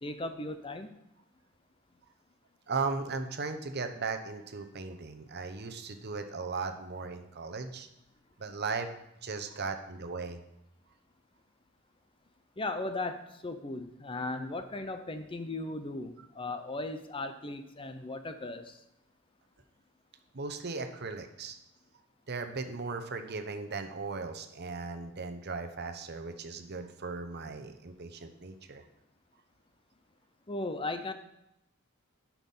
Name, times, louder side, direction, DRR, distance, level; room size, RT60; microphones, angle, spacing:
voice 1, 0.0-0.9 12.6-18.8 30.5-31.1, left 2 dB, 25° left, 8 dB, 0.6 m, -37 dB
voice 2, 2.7-7.9 8.4-8.9 9.2-10.4 20.3-21.6 22.3-28.8, right 4 dB, 50° right, 7 dB, 0.9 m, -37 dB
10.5 x 5.9 x 5.5 m, 0.82 s
head